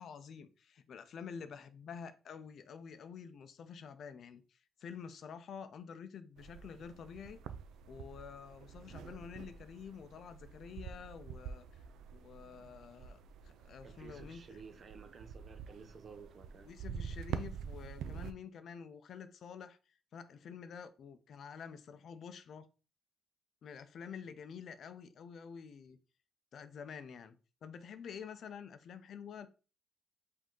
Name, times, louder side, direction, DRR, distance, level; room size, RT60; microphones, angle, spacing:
voice 1, 0.0-7.4 7.9-11.8 12.1-13.2 13.4-14.6 16.6-22.7 23.6-26.0 26.5-27.4 27.6-29.5, left 7 dB, 60° left, 0.5 m, -49 dB
sound 1, 6.4-18.3, right 7 dB, 85° right, 0.4 m, -47 dB
voice 2, 13.8-16.7, right 5 dB, 45° right, 0.7 m, -53 dB
5.1 x 2.8 x 3.7 m
cardioid pair, 90°, 0 cm